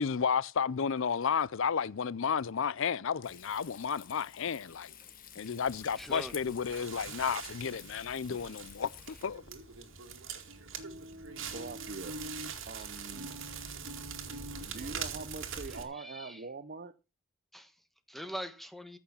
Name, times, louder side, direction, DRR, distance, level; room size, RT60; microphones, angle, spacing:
voice 1, 0.0-4.9 5.4-9.4, left 6 dB, 65° left, 0.5 m, -32 dB
Frying (food), 3.2-9.3, left 8 dB, 45° left, 1.4 m, -52 dB
Crackle, 5.6-15.8, right 5 dB, 65° right, 2.1 m, -43 dB
voice 2, 6.0-6.4 9.1-9.2 15.7-16.5 17.5-19.0, equal, ahead, 1.3 m, -45 dB
voice 3, 11.5-12.2 12.7-13.3 14.6-16.9, right 3 dB, 45° right, 0.7 m, -43 dB
14.5 x 6.2 x 5.7 m
head